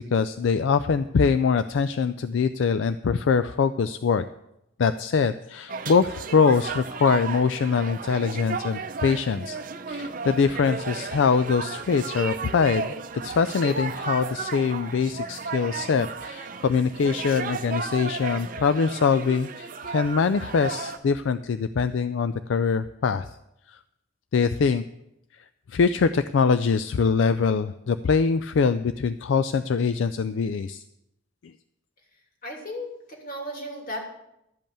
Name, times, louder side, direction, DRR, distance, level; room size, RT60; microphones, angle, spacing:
voice 1, 0.0-4.2 4.8-9.6 9.9-12.9 13.2-23.3 23.7-23.8 24.3-24.8 25.3-30.8 31.4-31.5, left 5 dB, 70° left, 12 dB, 0.4 m, -23 dB
sound 1, 5.7-21.0, right 5 dB, 45° right, 0.6 m, -34 dB
voice 2, 32.4-34.0, equal, 45° left, 1 dB, 2.7 m, -35 dB
12.5 x 5.4 x 8.8 m, 0.84 s
head